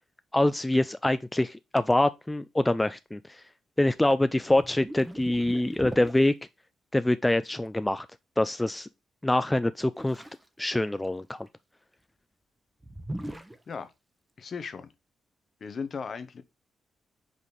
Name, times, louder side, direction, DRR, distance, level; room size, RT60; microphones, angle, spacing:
voice 1, 0.3-3.4 3.8-6.3 6.9-8.1 8.4-8.9 9.2-10.2 10.6-11.5, left 1 dB, 15° left, 0.4 m, -25 dB
sound 1, 4.5-6.2 10.0-10.5 10.9-11.5 12.8-13.6, right 1 dB, 10° right, 0.9 m, -39 dB
voice 2, 14.4-14.9 15.6-16.4, left 5 dB, 55° left, 0.9 m, -36 dB
5.1 x 4.0 x 5.3 m
supercardioid pair, 55°, 0 cm